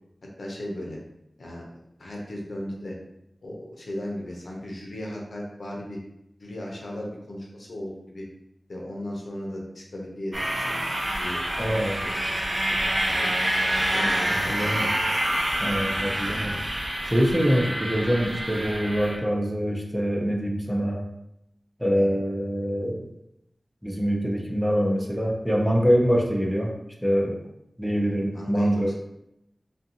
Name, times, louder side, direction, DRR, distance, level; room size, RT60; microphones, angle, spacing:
voice 1, 0.4-1.0 1.4-1.7 2.0-3.0 3.4-6.0 6.4-8.3 8.7-10.9 11.2-11.4 11.9-13.3 13.9-14.9 15.8-15.9 16.2-16.4 17.6-17.8 21.9-22.2 27.8-28.9, left 1 dB, 80° left, -2 dB, 0.6 m, -37 dB
sound 1, 10.3-19.2, right 1 dB, 55° right, 0.6 m, -27 dB
voice 2, 11.6-12.0 14.5-14.9 15.6-16.6 17.0-21.1 21.8-23.1 23.8-26.7 27.0-27.4 27.8-28.9, equal, ahead, 0 dB, 0.5 m, -24 dB
2.5 x 2.3 x 2.7 m, 0.82 s
wide cardioid pair, 60°, 0 cm